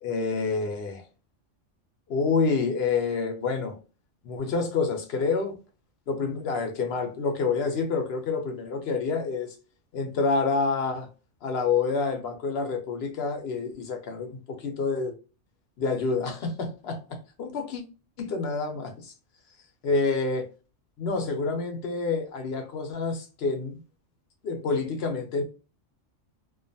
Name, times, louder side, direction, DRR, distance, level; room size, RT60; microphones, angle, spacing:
voice 1, 0.0-1.0 2.1-3.8 4.2-5.5 6.1-9.6 9.9-11.1 11.4-15.1 15.8-17.8 18.2-19.1 19.8-20.5 21.0-23.8 24.4-25.4, left 4 dB, 60° left, 0.8 m, -28 dB
2.4 x 2.3 x 2.5 m
omnidirectional pair, 1.3 m